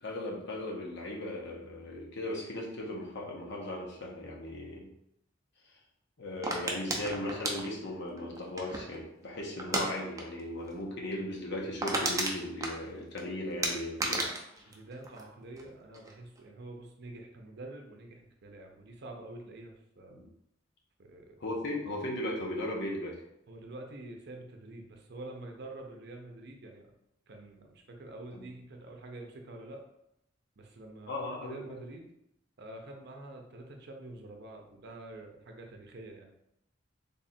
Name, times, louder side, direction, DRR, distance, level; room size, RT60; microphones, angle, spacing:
voice 1, 0.0-4.9 6.2-14.3 20.1-20.3 21.4-23.2 28.3-28.4 31.0-31.8, left 1 dB, 60° left, -2 dB, 0.9 m, -37 dB
sound 1, 6.4-9.0 9.6-9.9 10.2-10.4 10.7-10.8 11.2-11.3 11.5-13.2 13.6-15.7 15.9-16.4, right 2 dB, 15° right, 0.5 m, -33 dB
voice 2, 14.6-20.2 21.0-21.4 23.5-26.9 27.3-29.8 30.6-32.1 32.6-36.3, right 2 dB, 60° right, 2 dB, 0.6 m, -47 dB
3.5 x 2.4 x 4.2 m, 0.80 s
head